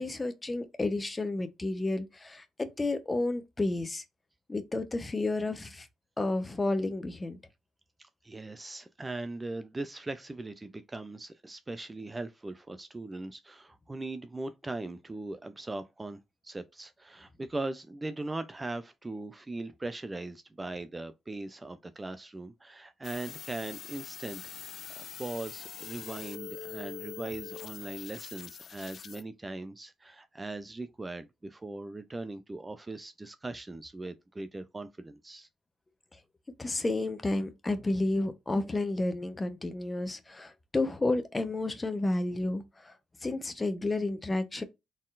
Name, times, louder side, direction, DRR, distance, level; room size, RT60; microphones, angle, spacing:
voice 1, 0.0-4.0 4.5-5.9 6.2-7.4 36.6-42.9 43.2-44.6, left 2 dB, 20° left, 0.9 m, -31 dB
voice 2, 8.0-35.5, right 2 dB, 20° right, 0.5 m, -40 dB
sound 1, 23.0-29.2, left 8 dB, 55° left, 0.3 m, -44 dB
4.3 x 3.7 x 2.5 m
cardioid pair, 90°, 0 cm